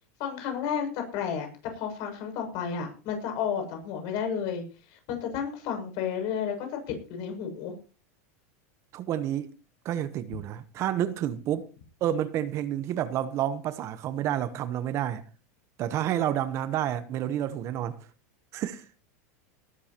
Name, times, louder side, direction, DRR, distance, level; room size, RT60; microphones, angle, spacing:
voice 1, 0.2-1.5 1.7-7.7, left 7 dB, 50° left, 7.0 m, -32 dB
voice 2, 8.9-9.5 9.8-11.7 12.0-15.2 15.8-18.0 18.5-19.0, right 11 dB, 35° right, 1.0 m, -29 dB
19.5 x 12.5 x 3.0 m
supercardioid pair, 160°, 9 cm